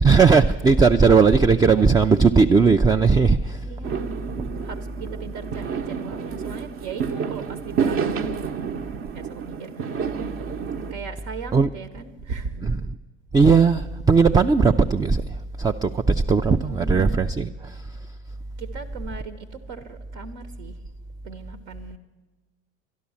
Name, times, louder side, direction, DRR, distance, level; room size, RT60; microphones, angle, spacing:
voice 1, 0.0-3.7 11.5-11.7 12.6-12.9 13.3-17.9, right 5 dB, 15° right, 0.3 m, -18 dB
voice 2, 3.6-4.1 4.6-8.4 8.8-10.2 10.9-12.7 16.7-17.3 18.6-20.8 21.2-22.0, right 5 dB, 70° right, 1.1 m, -38 dB
Fireworks, 3.8-10.9, right 6 dB, 45° right, 0.9 m, -29 dB
11.5 x 11.5 x 7.1 m
hypercardioid pair, 80°, 32 cm